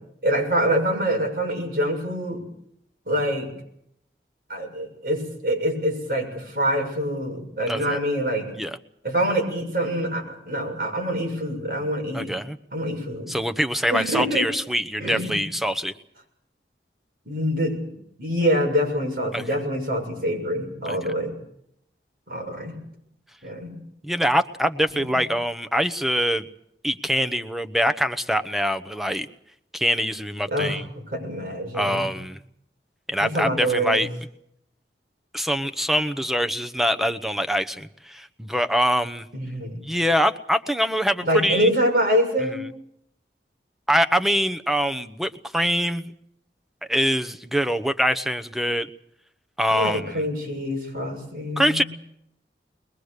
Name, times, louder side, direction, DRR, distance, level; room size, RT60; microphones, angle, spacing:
voice 1, 0.2-2.4 3.1-3.5 4.5-8.5 9.0-12.4 12.7-13.3 13.9-14.5 15.0-15.3 17.3-21.3 22.3-22.7 23.4-23.7 30.5-30.8 31.1-32.1 33.2-34.1 39.3-39.9 41.2-42.6 49.7-51.9, equal, 55° right, 3 dB, 6.9 m, -25 dB
voice 2, 7.7-8.0 8.6-8.8 12.1-12.6 13.3-15.9 19.3-19.4 20.9-21.1 24.0-26.5 26.8-29.3 29.7-30.8 31.7-32.4 33.1-34.1 35.3-39.3 39.8-41.7 43.9-46.1 46.9-48.9 49.6-50.2 51.6-51.8, equal, ahead, 10 dB, 0.9 m, -24 dB
22.0 x 22.0 x 6.7 m, 0.75 s
head